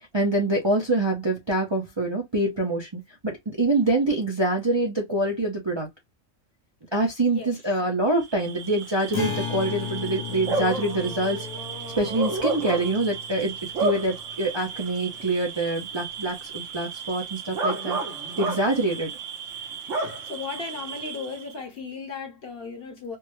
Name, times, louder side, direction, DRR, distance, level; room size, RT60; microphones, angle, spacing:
voice 1, 0.1-5.9 6.9-11.5 12.0-13.5 13.8-18.0 18.4-19.1, right 2 dB, 25° right, 0.7 m, -25 dB
Bark / Cricket, 8.2-21.5, right 4 dB, 70° right, 1.3 m, -32 dB
Acoustic guitar, 9.1-14.6, left 8 dB, 90° left, 1.2 m, -36 dB
voice 2, 20.0-23.2, left 4 dB, 50° left, 1.1 m, -36 dB
3.4 x 2.1 x 3.0 m
omnidirectional pair, 1.4 m